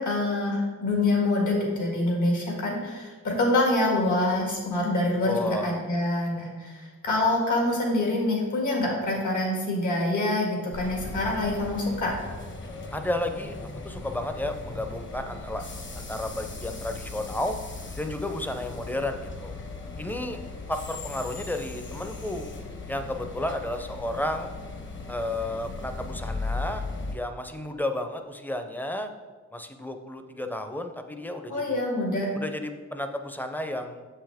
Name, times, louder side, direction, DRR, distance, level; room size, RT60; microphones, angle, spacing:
voice 1, 0.0-12.1 31.5-32.3, left 2 dB, 75° left, -1 dB, 1.8 m, -26 dB
voice 2, 5.2-5.8 12.9-13.6 13.8-15.7 16.0-17.5 18.0-19.5 20.0-20.4 20.7-22.5 22.9-24.5 25.1-26.8 27.1-29.1 29.5-31.8 32.3-34.1, left 1 dB, 5° left, 7 dB, 0.5 m, -32 dB
sound 1, 10.7-27.2, left 3 dB, 40° left, 0.8 m, -38 dB
7.3 x 5.6 x 3.4 m, 1.4 s
wide cardioid pair, 105°, 30 cm